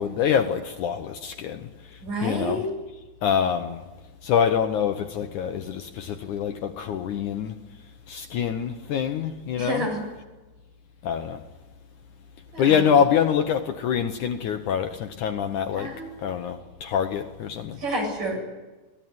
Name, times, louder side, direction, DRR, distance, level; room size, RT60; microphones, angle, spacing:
voice 1, 0.0-1.7 2.2-2.6 3.2-3.9 4.2-7.6 8.1-9.9 11.0-11.4 12.6-15.9 16.2-17.8, left 8 dB, 65° left, 2.2 m, -25 dB
voice 2, 2.0-2.7 9.6-10.0 12.5-12.9 15.8-16.0 17.8-18.4, equal, 60° right, 9.6 m, -29 dB
24.0 x 18.0 x 9.4 m
omnidirectional pair, 4.2 m